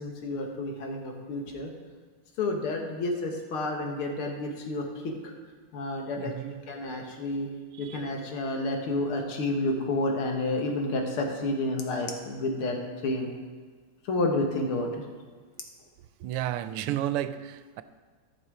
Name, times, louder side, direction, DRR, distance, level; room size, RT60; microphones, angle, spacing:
voice 1, 0.0-1.7 2.4-5.3 5.7-6.3 6.7-7.5 7.8-13.3 14.0-15.1, left 2 dB, 75° left, 2.2 m, -30 dB
voice 2, 6.2-6.6 7.8-8.0 16.2-17.8, right 12 dB, 90° right, 1.5 m, -32 dB
14.0 x 6.0 x 4.8 m
omnidirectional pair, 2.4 m